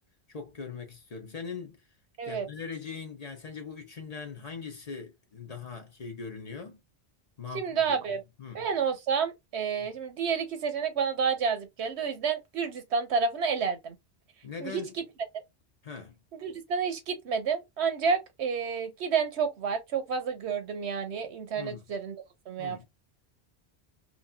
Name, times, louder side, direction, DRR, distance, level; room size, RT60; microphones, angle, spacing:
voice 1, 0.3-1.8 2.3-6.8 7.4-8.7 9.8-9.9 14.4-14.9 15.8-16.2 21.5-21.8 22.6-22.9, left 5 dB, 45° left, 0.7 m, -41 dB
voice 2, 7.5-8.2 8.5-13.9 14.6-15.0 16.3-22.2 22.5-22.9, right 6 dB, 85° right, 1.1 m, -30 dB
3.0 x 2.6 x 2.2 m
omnidirectional pair, 1.1 m